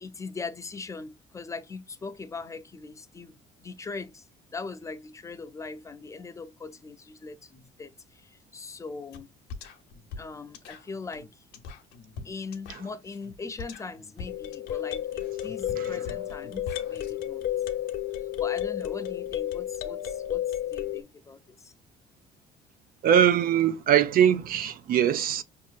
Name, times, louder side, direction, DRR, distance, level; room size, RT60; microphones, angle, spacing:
voice 1, 0.0-3.3 3.6-4.2 4.5-7.9 8.2-9.3 10.2-11.3 12.2-17.4 18.4-20.4 20.7-21.7, left 4 dB, 20° left, 0.5 m, -40 dB
sound 1, 9.1-9.2 9.5-17.1, left 4 dB, 90° left, 0.8 m, -43 dB
sound 2, 14.3-21.0, left 12 dB, 60° left, 0.7 m, -31 dB
voice 2, 23.0-25.4, right 9 dB, 60° right, 0.6 m, -22 dB
5.4 x 2.8 x 2.4 m
cardioid pair, 110°, 17 cm